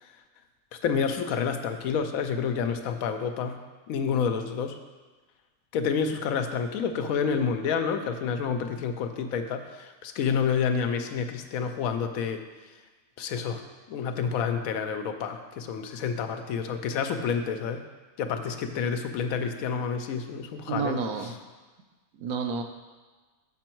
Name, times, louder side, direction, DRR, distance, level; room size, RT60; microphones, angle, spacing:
voice 1, 0.8-3.6 3.9-4.8 5.7-12.4 13.2-13.6 13.9-17.8 18.2-21.0, left 6 dB, 85° left, 7 dB, 1.0 m, -29 dB
voice 2, 20.7-21.4 22.1-22.6, right 5 dB, 80° right, 5 dB, 1.1 m, -30 dB
6.1 x 6.0 x 4.4 m, 1.3 s
omnidirectional pair, 1.4 m